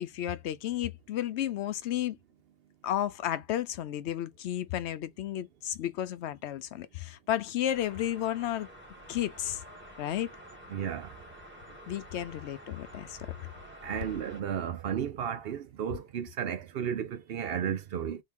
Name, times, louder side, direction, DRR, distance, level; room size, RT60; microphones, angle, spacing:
voice 1, 0.0-2.2 2.8-8.7 9.1-9.6 10.0-10.3 11.9-13.5, left 12 dB, 80° left, 0.9 m, -33 dB
sound 1, 7.7-14.4, equal, 10° right, 1.7 m, -50 dB
voice 2, 10.7-11.1 13.8-18.2, right 8 dB, 65° right, 0.8 m, -33 dB
3.6 x 3.0 x 3.6 m
omnidirectional pair, 1.1 m